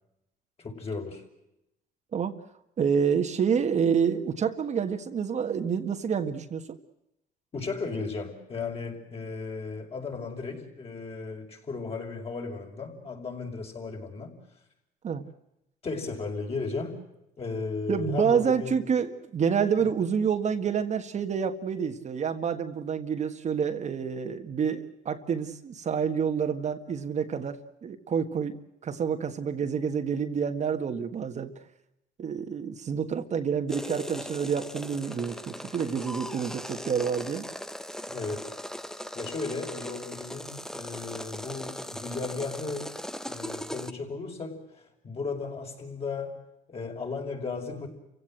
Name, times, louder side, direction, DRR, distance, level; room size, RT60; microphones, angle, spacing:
voice 1, 0.6-1.2 7.5-14.3 15.8-16.9 17.4-18.7 38.1-38.5 39.0-42.9 43.3-46.4 46.7-47.9, left 4 dB, 35° left, 1 dB, 6.1 m, -35 dB
voice 2, 2.8-6.6 15.0-15.2 17.9-28.6 28.8-31.5 32.2-37.5, right 7 dB, 45° right, 6 dB, 1.7 m, -28 dB
sound 1, 33.7-43.9, equal, 5° left, 0.8 m, -39 dB
29.0 x 16.5 x 7.8 m, 0.85 s
cardioid pair, 110°, 17 cm